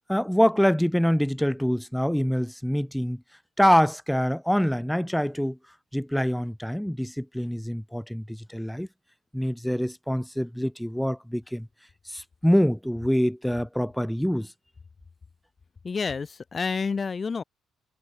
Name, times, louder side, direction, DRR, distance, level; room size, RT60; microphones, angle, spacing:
voice 1, 0.1-3.2 3.6-5.6 5.9-8.9 9.3-11.7 12.1-14.5, equal, ahead, 0.5 m, -25 dB
voice 2, 15.8-17.4, left 5 dB, 35° left, 1.0 m, -29 dB
cardioid pair, 80°, 0 cm